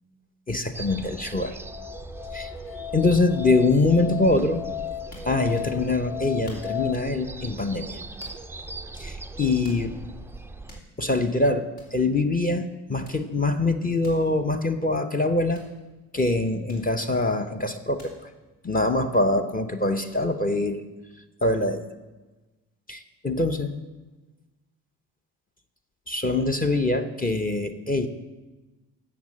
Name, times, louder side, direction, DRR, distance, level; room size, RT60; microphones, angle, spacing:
voice 1, 0.5-1.6 2.3-2.5 2.9-4.6 5.2-8.0 8.9-9.9 11.0-15.6 16.1-18.3 18.6-20.8 21.4-21.8 22.9-23.7 26.1-28.1, left 2 dB, 20° left, 6 dB, 0.7 m, -24 dB
sound 1, 0.7-10.8, right 3 dB, 5° right, 0.3 m, -40 dB
Musical instrument, 1.3-6.9, left 12 dB, 80° left, 0.5 m, -35 dB
sound 2, 5.1-5.8 6.5-7.0 8.2-8.7 9.1-9.2 9.6-10.2 10.5-11.2 11.5-11.6 11.8-12.0 13.0-13.4 14.0-14.3 15.5-15.8 16.7-17.3 18.0-18.3 18.6-19.4 20.0-20.2, left 2 dB, 65° left, 3.3 m, -49 dB
8.0 x 6.5 x 7.3 m, 1.2 s
supercardioid pair, 70°, 42 cm